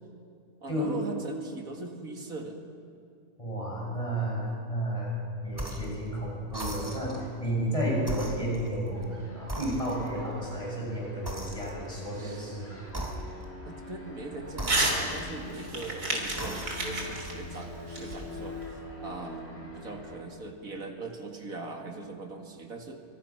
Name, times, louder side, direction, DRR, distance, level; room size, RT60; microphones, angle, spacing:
voice 1, 0.6-2.6 12.1-12.5 13.7-23.0, right 3 dB, 65° right, 3 dB, 2.6 m, -41 dB
voice 2, 3.4-5.2 5.4-12.9, right 1 dB, 20° left, -4 dB, 6.9 m, -32 dB
sound 1, 5.5-6.0 6.5-7.3 8.0-9.1 9.5-10.3 11.2-12.0 12.9-13.6 14.5-15.6 16.2-17.0, right 1 dB, 15° right, 2.9 m, -38 dB
sound 2, 8.9-20.2, left 1 dB, 40° left, 4.6 m, -44 dB
Crumpling crinkling / Tearing, 14.6-15.0 15.3-18.6, right 2 dB, 85° right, 3.9 m, -31 dB
26.0 x 25.0 x 6.0 m, 2.4 s
omnidirectional pair, 1.6 m